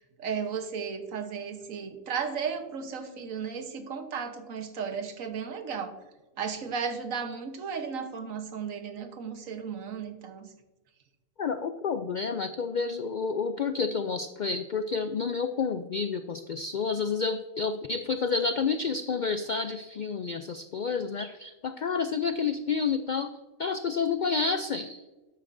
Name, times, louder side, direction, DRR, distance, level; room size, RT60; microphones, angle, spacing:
voice 1, 0.0-5.9 6.4-10.5, right 6 dB, 85° right, 7 dB, 1.5 m, -35 dB
voice 2, 11.4-25.0, left 5 dB, 75° left, 9 dB, 0.4 m, -30 dB
11.5 x 8.5 x 2.6 m, 1.2 s
omnidirectional pair, 1.3 m